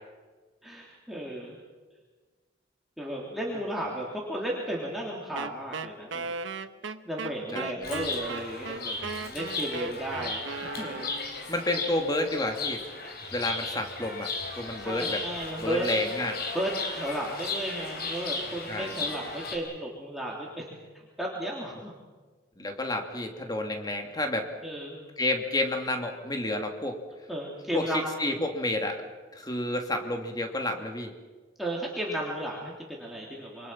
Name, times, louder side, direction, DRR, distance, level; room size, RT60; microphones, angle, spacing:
voice 1, 0.6-1.6 3.0-6.3 7.0-11.1 14.8-16.1 16.5-20.8 21.2-21.9 24.6-25.1 27.3-28.4 31.6-33.7, right 1 dB, ahead, -4 dB, 3.4 m, -34 dB
Wind instrument woodwind instrument, 5.4-11.4, right 4 dB, 90° right, 1.1 m, -37 dB
voice 2, 7.5-7.9 11.5-12.8 13.3-14.3 14.5-15.2 15.6-16.4 18.7-19.1 22.6-24.5 25.2-27.0 27.7-29.0 29.3-31.1, left 1 dB, 20° left, 4 dB, 2.8 m, -30 dB
Chirp tweet, 7.8-19.6, left 3 dB, 55° left, 4.3 m, -36 dB
27.5 x 25.5 x 5.9 m, 1.4 s
head